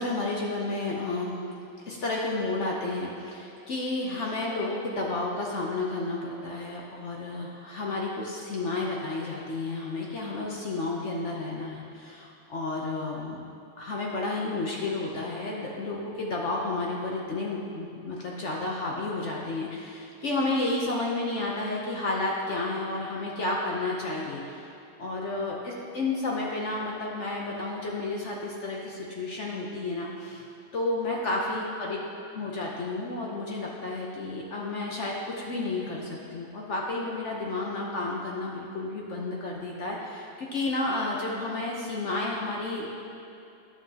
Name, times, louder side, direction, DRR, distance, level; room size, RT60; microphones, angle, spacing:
voice 1, 0.0-1.4 1.9-13.4 13.8-30.4 30.7-32.0 32.4-42.9, left 2 dB, 55° left, -3 dB, 0.8 m, -31 dB
11.0 x 7.5 x 2.8 m, 2.7 s
omnidirectional pair, 2.1 m